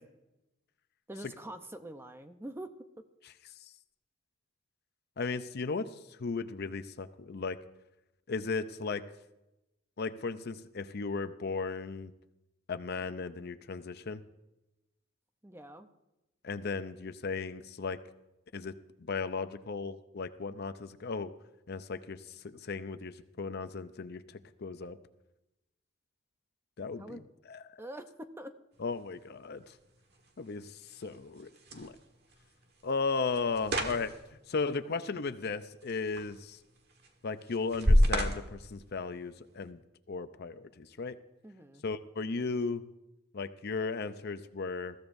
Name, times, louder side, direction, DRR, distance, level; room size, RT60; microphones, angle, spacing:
voice 1, 1.1-2.7 15.4-15.9 27.0-27.2 27.8-28.5 41.4-41.8, right 1 dB, 10° right, 8 dB, 0.7 m, -45 dB
voice 2, 5.2-5.9 6.2-7.6 8.3-9.0 10.0-12.1 12.7-14.2 16.4-18.0 18.5-18.7 19.0-21.3 21.7-25.0 26.8-27.2 27.5-27.6 28.8-29.6 30.4-32.0 32.8-34.1 34.5-36.6 37.2-39.8 40.1-41.2 41.8-42.8 43.3-44.9, left 4 dB, 55° left, 11 dB, 0.6 m, -36 dB
sound 1, 28.7-39.7, equal, 55° right, 1.6 m, -34 dB
21.0 x 14.5 x 2.6 m, 0.95 s
head